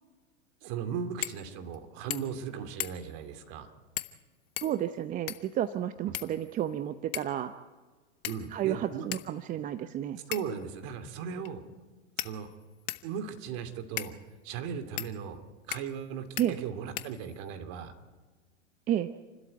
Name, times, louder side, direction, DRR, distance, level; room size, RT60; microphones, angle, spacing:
voice 1, 0.6-3.7 6.1-6.2 8.2-9.0 10.3-11.6 12.2-12.5 13.0-14.1 14.4-15.4 15.7-17.9, right 7 dB, 40° right, 9 dB, 2.6 m, -37 dB
sound 1, 1.2-1.4 1.7-1.8 2.1-2.4 2.8-3.2 4.0-4.2 4.6-5.6 6.1-6.7 7.1-7.4 8.2-8.7 9.1-9.3 10.3-10.6 11.4-11.5 12.2-13.1 14.0-14.1 15.0-15.1 15.7-16.0 16.4-16.5 17.0-17.5, left 17 dB, 45° left, 1.4 m, -38 dB
voice 2, 4.6-7.5 8.5-10.2 16.4-16.6 18.9-19.1, right 11 dB, 20° right, 12 dB, 0.7 m, -31 dB
28.5 x 13.0 x 9.5 m, 1.3 s
hypercardioid pair, 110°, 38 cm